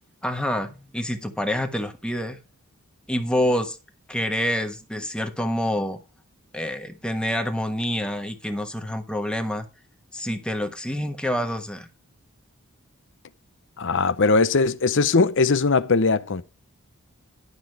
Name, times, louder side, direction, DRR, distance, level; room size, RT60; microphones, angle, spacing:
voice 1, 0.2-2.4 3.1-3.8 4.1-6.0 6.5-9.7 10.1-11.9, equal, 5° left, 1.3 m, -27 dB
voice 2, 13.8-16.4, left 4 dB, 55° left, 0.8 m, -20 dB
11.5 x 6.2 x 4.8 m
head